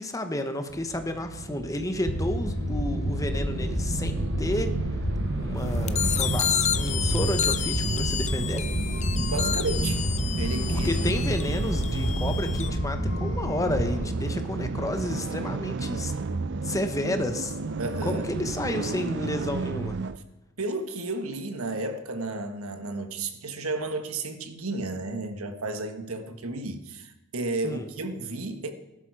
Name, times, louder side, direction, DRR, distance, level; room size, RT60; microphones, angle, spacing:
voice 1, 0.0-4.8 5.4-8.7 10.7-16.1 16.6-17.5 18.0-20.0 27.6-27.9, left 1 dB, 15° left, 7 dB, 1.0 m, -31 dB
sound 1, 0.7-20.2, right 3 dB, 55° right, 0.5 m, -32 dB
sound 2, 2.0-14.1, equal, 75° left, 2.2 m, -30 dB
sound 3, 5.9-12.7, left 10 dB, 30° left, 0.5 m, -30 dB
voice 2, 9.1-10.0 10.4-11.0 17.8-18.3 20.6-28.7, right 2 dB, 80° right, 8 dB, 1.4 m, -32 dB
16.0 x 11.5 x 4.8 m, 1.0 s
head